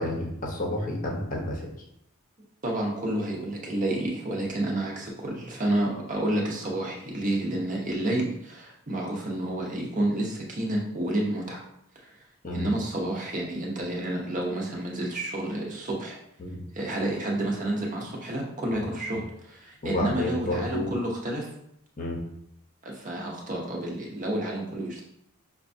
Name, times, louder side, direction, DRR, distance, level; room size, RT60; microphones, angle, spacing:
voice 1, 0.0-1.6 12.4-12.7 16.4-16.6 19.8-20.9 22.0-22.2, left 1 dB, 35° left, -1 dB, 0.7 m, -30 dB
voice 2, 2.6-11.6 12.0-12.1 12.5-16.2 16.7-21.5 22.8-25.0, right 1 dB, 35° right, -1 dB, 0.7 m, -30 dB
5.7 x 2.2 x 2.6 m, 0.77 s
head